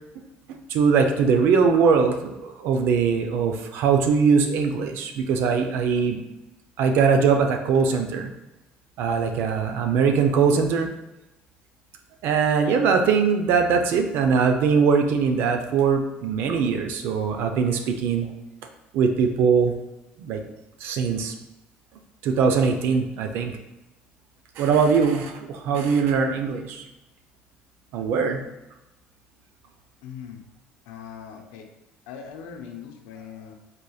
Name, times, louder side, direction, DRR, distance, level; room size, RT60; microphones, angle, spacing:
voice 1, 0.5-6.2 6.8-8.3 9.0-10.9 12.2-18.3 18.9-19.7 20.2-20.4 20.8-21.3 22.2-23.5 24.6-26.8 27.9-28.4, right 5 dB, 70° right, 5 dB, 0.4 m, -21 dB
voice 2, 30.0-30.4 30.9-31.7 32.1-33.5, left 7 dB, 90° left, 4 dB, 0.5 m, -40 dB
3.9 x 3.3 x 2.3 m, 0.98 s
supercardioid pair, 90°, 4 cm